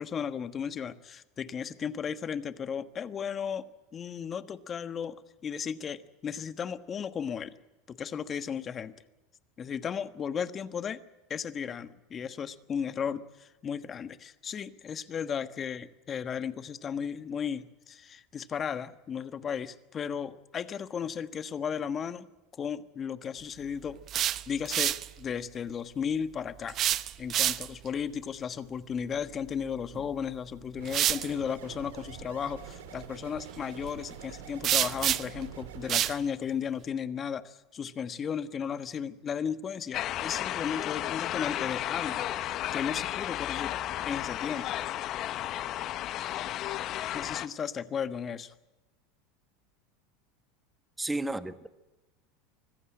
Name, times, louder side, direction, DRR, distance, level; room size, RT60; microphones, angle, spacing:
voice 1, 0.0-3.7 3.9-5.2 5.4-7.5 7.9-8.9 9.6-11.0 11.3-22.3 22.5-24.0 24.5-26.8 27.2-42.3 42.7-43.7 44.0-44.7 47.1-48.5, left 7 dB, 30° left, 1.3 m, -35 dB
sound 1, 23.9-25.1 26.7-27.9 29.9-30.1 30.8-31.3 34.6-35.4 35.9-36.2, right 11 dB, 45° right, 0.8 m, -28 dB
sound 2, 30.8-36.1, right 8 dB, 85° right, 3.2 m, -46 dB
sound 3, 39.9-47.5, left 13 dB, 50° left, 1.0 m, -33 dB
voice 2, 51.0-51.7, right 2 dB, 10° right, 1.4 m, -32 dB
24.5 x 15.5 x 8.8 m
hypercardioid pair, 100°, 0 cm